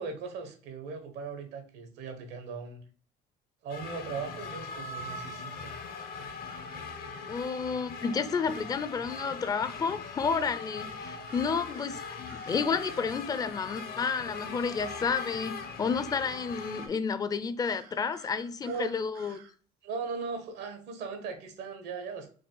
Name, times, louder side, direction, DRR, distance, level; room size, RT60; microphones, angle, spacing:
voice 1, 0.0-2.8 3.6-5.7 18.7-18.9 19.8-22.3, right 4 dB, 85° right, 1.1 m, -38 dB
sound 1, 3.7-16.9, left 4 dB, 65° left, 0.7 m, -40 dB
sound 2, 5.5-6.8 11.3-13.2 17.6-19.5, right 7 dB, 65° right, 0.7 m, -54 dB
voice 2, 7.3-19.4, left 5 dB, 20° left, 0.4 m, -31 dB
4.8 x 2.3 x 3.8 m
cardioid pair, 110°, 17 cm